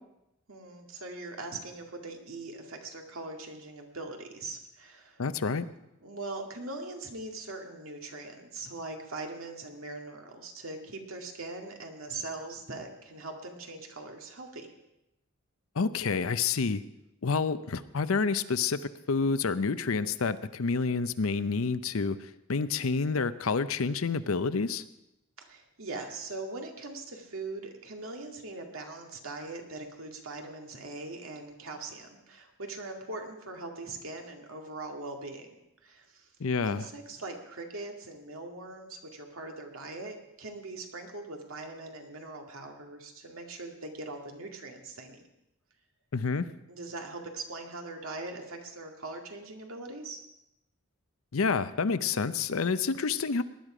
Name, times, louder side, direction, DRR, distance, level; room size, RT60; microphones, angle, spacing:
voice 1, 0.5-5.2 6.0-14.7 25.4-35.5 35.8-36.3 36.6-45.2 46.7-50.2, right 2 dB, 80° right, 3 dB, 2.1 m, -41 dB
voice 2, 5.2-5.7 15.8-16.8 17.2-18.8 19.1-24.8 36.4-36.8 46.1-46.5 51.3-53.4, left 4 dB, 80° left, 13 dB, 0.6 m, -28 dB
19.0 x 11.0 x 5.0 m, 0.88 s
head